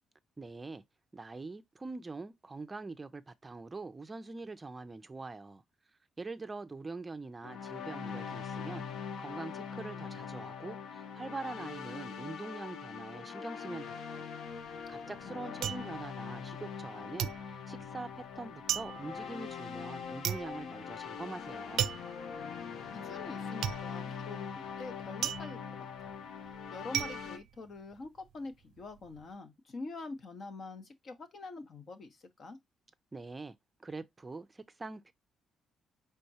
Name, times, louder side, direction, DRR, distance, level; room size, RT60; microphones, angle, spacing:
voice 1, 0.4-0.8 1.1-5.6 6.2-14.2 14.9-21.9 33.1-33.5 33.8-35.1, right 3 dB, 25° right, 0.5 m, -44 dB
sound 1, 7.4-27.4, left 6 dB, 75° left, 0.6 m, -42 dB
sound 2, 14.5-16.9 17.2-28.3 28.6-29.2, right 10 dB, 80° right, 0.4 m, -38 dB
voice 2, 14.7-15.7 22.3-26.1 26.7-32.6, left 3 dB, 50° left, 1.0 m, -46 dB
4.4 x 3.6 x 2.8 m
cardioid pair, 90°, 0 cm